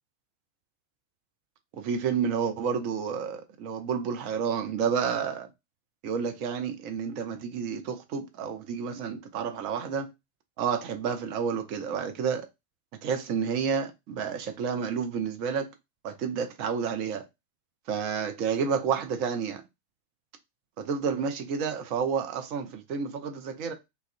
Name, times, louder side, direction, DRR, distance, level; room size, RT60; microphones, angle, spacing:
voice 1, 1.7-5.5 6.0-10.1 10.6-12.5 13.0-15.7 16.0-17.3 17.9-19.6 20.8-23.7, right 6 dB, 45° right, 0.5 m, -30 dB
2.4 x 2.0 x 2.5 m
figure-of-eight pair, 90°, 0 cm